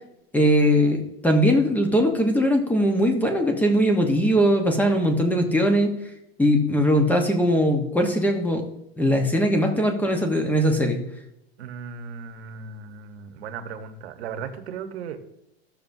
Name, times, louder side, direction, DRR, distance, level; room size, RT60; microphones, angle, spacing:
voice 1, 0.3-5.9 6.4-8.6 9.0-11.0, equal, 5° left, 4 dB, 1.0 m, -20 dB
voice 2, 11.6-15.2, right 6 dB, 80° right, 7 dB, 1.2 m, -36 dB
14.5 x 6.7 x 2.7 m, 0.83 s
supercardioid pair, 140°, 32 cm